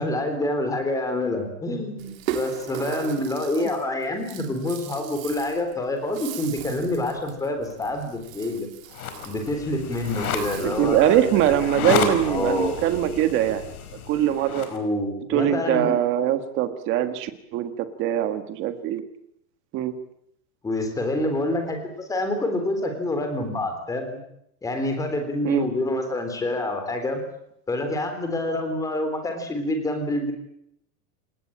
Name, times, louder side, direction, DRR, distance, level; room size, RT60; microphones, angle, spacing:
voice 1, 0.0-8.7 9.3-11.2 11.8-12.8 14.7-16.0 20.6-24.2 24.6-27.2 27.7-30.3, left 1 dB, 5° left, 6 dB, 3.6 m, -27 dB
Rattle (instrument), 2.0-11.0, right 12 dB, 60° right, 3.3 m, -38 dB
sound 1, 8.9-14.8, left 6 dB, 65° left, 5.0 m, -31 dB
voice 2, 10.6-13.6 14.1-14.7 15.3-19.0 19.7-19.9 25.4-25.7, right 11 dB, 25° right, 9 dB, 1.7 m, -22 dB
27.0 x 19.5 x 8.8 m, 0.76 s
supercardioid pair, 180°, 46 cm